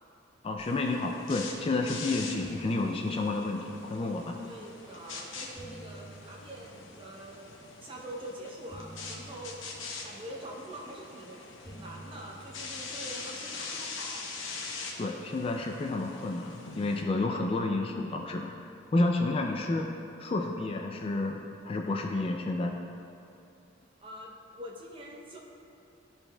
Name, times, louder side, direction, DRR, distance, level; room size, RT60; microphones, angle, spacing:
voice 1, 0.4-4.4 15.0-18.5 18.9-19.9 20.2-21.4 21.6-22.7, left 2 dB, 30° left, 2 dB, 0.3 m, -30 dB
sound 1, 0.6-17.0, left 4 dB, 70° left, 0.8 m, -43 dB
sound 2, 1.8-2.0 2.2-4.6 5.3-7.7 8.7-11.1 11.6-14.2, right 1 dB, 10° right, 1.5 m, -51 dB
voice 2, 4.4-14.3 24.0-25.4, right 1 dB, 25° right, -3 dB, 0.8 m, -45 dB
12.5 x 4.3 x 2.2 m, 2.6 s
head